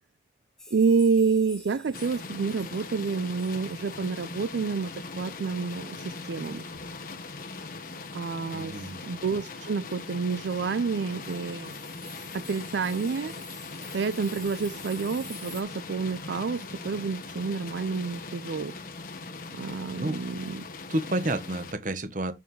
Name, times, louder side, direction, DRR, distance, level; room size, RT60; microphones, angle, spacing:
sound 1, 0.6-6.8 7.0-7.1 7.4-7.6 8.0-8.2 8.9-9.0 10.9-15.6, left 2 dB, 5° left, 1.1 m, -49 dB
voice 1, 0.7-6.7 8.1-11.7 12.3-13.4 13.9-18.8 19.5-20.6, right 5 dB, 80° right, 0.4 m, -29 dB
sound 2, 1.9-21.7, left 3 dB, 50° left, 1.3 m, -40 dB
voice 2, 8.5-9.0 20.0-20.2 20.9-22.3, right 1 dB, 45° right, 1.1 m, -30 dB
6.9 x 6.6 x 3.2 m
head